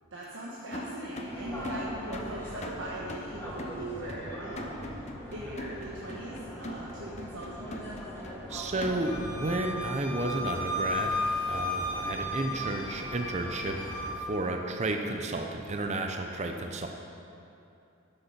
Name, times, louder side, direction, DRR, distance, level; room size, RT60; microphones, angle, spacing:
voice 1, 0.1-7.8, right 1 dB, 70° right, -5 dB, 1.3 m, -40 dB
sound 1, 0.7-9.3, left 1 dB, 30° left, 0.8 m, -42 dB
sound 2, 1.2-14.1, equal, 10° left, 1.9 m, -42 dB
voice 2, 8.5-13.8 14.2-16.9, right 2 dB, 30° right, 3 dB, 0.7 m, -32 dB
Wind instrument woodwind instrument, 9.0-14.2, left 1 dB, 80° left, 2.5 m, -34 dB
12.5 x 6.8 x 5.8 m, 2.7 s
head